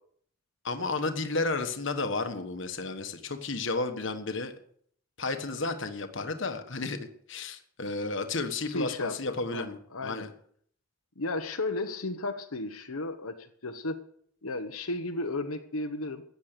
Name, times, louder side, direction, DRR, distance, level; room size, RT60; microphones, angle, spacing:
voice 1, 0.6-4.5 5.2-10.3, left 3 dB, 55° left, 7 dB, 1.4 m, -32 dB
voice 2, 8.6-10.3 11.2-14.0 14.4-16.2, left 2 dB, 80° left, 5 dB, 1.2 m, -34 dB
15.0 x 9.6 x 6.8 m, 0.63 s
head